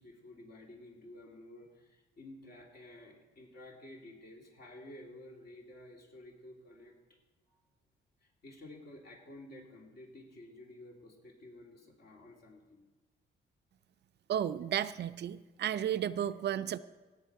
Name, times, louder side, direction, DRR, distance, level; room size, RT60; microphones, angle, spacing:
voice 1, 0.0-7.2 7.5-7.6 8.2-12.9, left 1 dB, 55° left, 0 dB, 3.0 m, -52 dB
voice 2, 14.3-16.8, right 10 dB, 60° right, 13 dB, 0.5 m, -33 dB
17.5 x 7.4 x 4.7 m, 1.2 s
cardioid pair, 90°, 20 cm